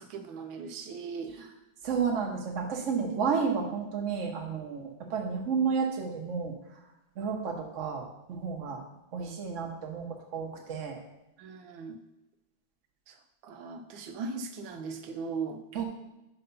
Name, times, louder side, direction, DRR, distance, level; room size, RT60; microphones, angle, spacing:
voice 1, 0.0-1.4 3.1-3.2 11.4-12.0 13.1-13.2 13.4-15.6, right 4 dB, 80° right, 7 dB, 1.5 m, -38 dB
voice 2, 1.8-6.5 7.2-8.8 9.1-11.0 15.7-15.8, right 6 dB, 45° right, 2 dB, 1.2 m, -31 dB
5.7 x 5.3 x 5.4 m, 0.92 s
omnidirectional pair, 2.1 m